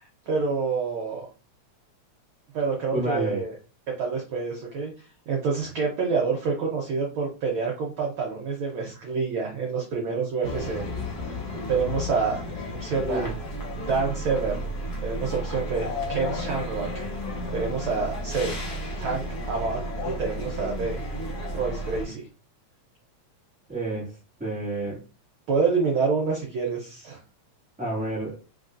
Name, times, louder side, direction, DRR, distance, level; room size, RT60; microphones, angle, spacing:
voice 1, 0.3-1.3 2.5-3.5 4.0-10.8 11.7-12.4 12.7-13.3 13.8-14.7 15.0-16.9 17.5-18.5 19.0-19.8 20.0-21.0 21.5-22.3 25.5-27.2, right 5 dB, 70° right, -1 dB, 1.2 m, -27 dB
voice 2, 2.9-3.4 13.0-13.3 23.7-24.1 24.4-25.0 27.8-28.4, right 1 dB, 5° right, -6 dB, 1.5 m, -29 dB
sound 1, 10.4-22.0, left 1 dB, 50° left, 1.3 m, -32 dB
4.0 x 3.4 x 2.5 m, 0.34 s
omnidirectional pair, 3.3 m